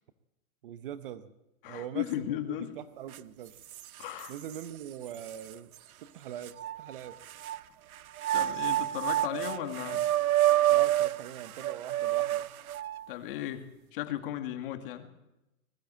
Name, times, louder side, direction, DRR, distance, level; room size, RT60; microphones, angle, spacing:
voice 1, 0.6-1.3 1.7-3.6 4.3-7.2 10.7-12.6, right 10 dB, 40° right, 13 dB, 0.9 m, -42 dB
voice 2, 1.6-2.8 4.0-4.3 8.3-10.0 13.1-15.1, left 12 dB, 40° left, 8 dB, 2.0 m, -36 dB
sound 1, 3.1-3.2 3.7-4.6 5.3-5.4 6.5-7.6 8.2-13.1, right 14 dB, 75° right, 0.8 m, -28 dB
20.5 x 14.5 x 8.8 m, 0.92 s
hypercardioid pair, 155°, 43 cm